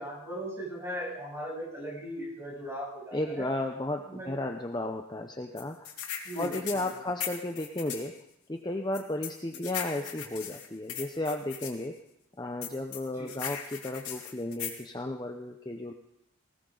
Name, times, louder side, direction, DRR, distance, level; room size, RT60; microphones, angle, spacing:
voice 1, 0.0-3.5 4.1-4.3 6.2-6.5 6.8-6.9 13.2-13.3, equal, 10° right, -4 dB, 7.9 m, -38 dB
voice 2, 3.1-5.9 6.4-8.1 8.5-11.9 12.4-15.9, left 1 dB, 20° left, 4 dB, 0.7 m, -34 dB
sound 1, 5.6-8.1 8.9-11.7 12.6-14.8, left 8 dB, 85° left, 2.6 m, -38 dB
20.0 x 18.0 x 3.9 m, 0.80 s
head